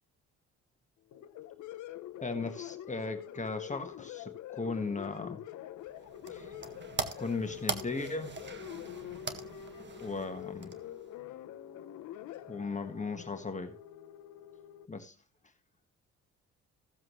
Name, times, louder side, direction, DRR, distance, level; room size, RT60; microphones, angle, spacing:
sound 1, 1.1-14.9, left 12 dB, 75° left, 0.9 m, -45 dB
voice 1, 2.2-5.4 6.3-6.5 7.2-8.3 10.0-10.7 12.5-13.8 14.9-15.1, left 3 dB, 25° left, 1.5 m, -37 dB
sound 2, 5.8-11.2, right 5 dB, 35° right, 1.7 m, -41 dB
16.0 x 7.5 x 3.1 m
cardioid pair, 90°, 30 cm